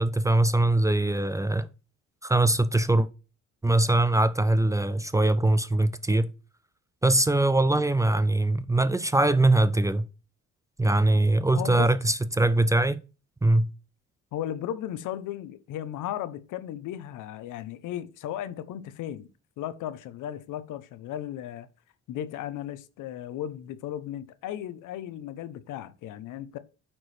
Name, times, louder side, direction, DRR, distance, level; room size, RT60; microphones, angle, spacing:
voice 1, 0.0-1.7 2.2-3.1 3.6-6.3 7.0-10.1 10.8-13.0 13.4-13.7, right 2 dB, 10° right, 0.4 m, -22 dB
voice 2, 11.5-11.9 14.3-19.3 19.6-21.7 22.1-26.6, left 11 dB, 85° left, 0.7 m, -35 dB
8.4 x 4.5 x 3.3 m
cardioid pair, 90°, 30 cm